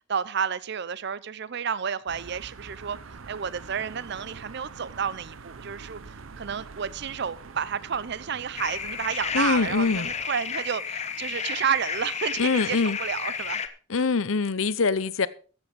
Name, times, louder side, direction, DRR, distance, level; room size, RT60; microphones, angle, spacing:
voice 1, 0.1-3.0 3.3-13.6, right 7 dB, 55° right, 0.5 m, -31 dB
sound 1, 2.1-10.2, right 4 dB, 85° right, 0.8 m, -45 dB
sound 2, 8.5-13.7, left 6 dB, 35° left, 1.0 m, -32 dB
voice 2, 9.3-10.1 12.4-13.0 13.9-15.3, left 4 dB, 85° left, 0.8 m, -24 dB
13.5 x 8.1 x 5.2 m
head